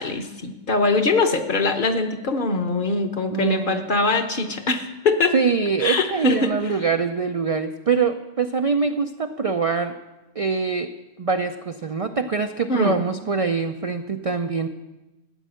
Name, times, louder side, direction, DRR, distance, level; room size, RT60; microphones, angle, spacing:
voice 1, 0.0-5.3 5.8-6.5 12.7-13.0, left 3 dB, 45° left, 6 dB, 1.0 m, -22 dB
voice 2, 3.3-3.9 5.3-9.9 10.4-10.9 11.2-14.7, right 5 dB, 60° right, 7 dB, 0.3 m, -24 dB
13.0 x 9.1 x 6.3 m, 1.1 s
omnidirectional pair, 1.3 m